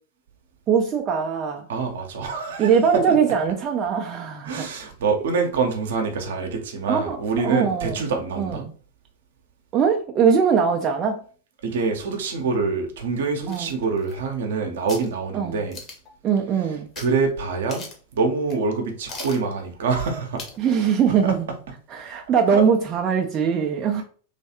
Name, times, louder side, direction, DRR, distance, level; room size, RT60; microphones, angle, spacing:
voice 1, 0.7-1.7 2.6-4.6 6.9-7.2 7.4-8.0 8.4-8.6 9.7-11.2 13.5-13.7 15.3-15.6 16.2-16.9 20.6-21.4 21.9-24.0, right 6 dB, 30° right, 0.5 m, -21 dB
voice 2, 1.7-3.2 4.4-8.6 11.6-15.8 17.0-17.9 18.1-20.4 21.2-21.3 22.5-22.6, right 4 dB, 60° right, 0.8 m, -25 dB
sound 1, 13.5-14.5 14.9-15.1 15.7-16.1 16.9-17.1 17.4-17.5 17.7-18.1 18.5-18.6 19.1-19.4 20.4-20.6 21.0-21.1, left 3 dB, 30° left, 1.0 m, -38 dB
3.2 x 3.1 x 2.9 m
figure-of-eight pair, 90°, 0 cm